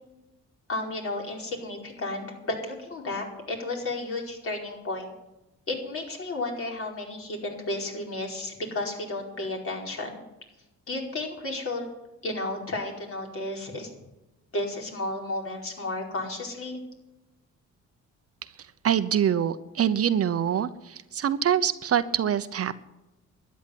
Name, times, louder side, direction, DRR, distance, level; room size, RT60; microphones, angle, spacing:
voice 1, 0.7-5.1 5.7-10.2 10.9-11.9 12.2-13.9 14.5-16.8, left 2 dB, 45° left, 1 dB, 4.9 m, -33 dB
voice 2, 18.8-22.8, right 9 dB, 50° right, 12 dB, 0.9 m, -25 dB
12.5 x 10.5 x 9.6 m, 0.99 s
cardioid pair, 90°, 30 cm